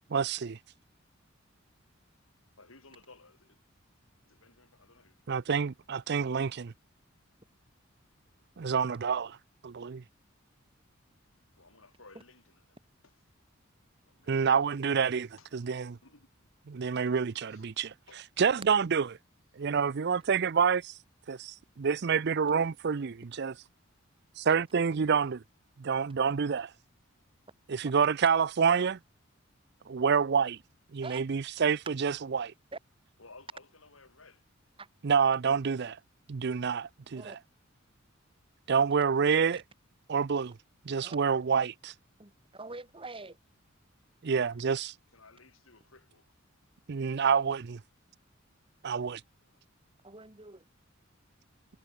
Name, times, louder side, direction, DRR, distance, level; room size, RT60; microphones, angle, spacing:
voice 1, 0.1-0.6 5.3-6.7 8.6-9.4 9.6-10.0 14.3-16.0 16.7-17.9 18.4-19.0 19.6-20.9 21.3-23.5 24.4-25.4 25.8-26.7 27.7-29.0 29.9-30.6 30.9-32.5 35.0-36.0 36.3-37.2 38.7-39.6 40.1-40.6 40.9-41.9 44.2-44.9 46.9-47.8 48.8-49.2, right 6 dB, 55° right, 0.5 m, -28 dB
voice 2, 2.6-3.6 4.2-5.2 8.3-8.5 11.6-12.8 13.0-13.1 14.1-14.7 15.4-15.5 16.0-16.5 17.2-17.7 18.1-18.3 28.0-28.2 33.2-34.4 44.2-46.3 49.4-49.6, left 3 dB, 85° left, 6.4 m, -58 dB
voice 3, 42.2-43.4 50.0-50.6, right 3 dB, 25° right, 2.3 m, -44 dB
head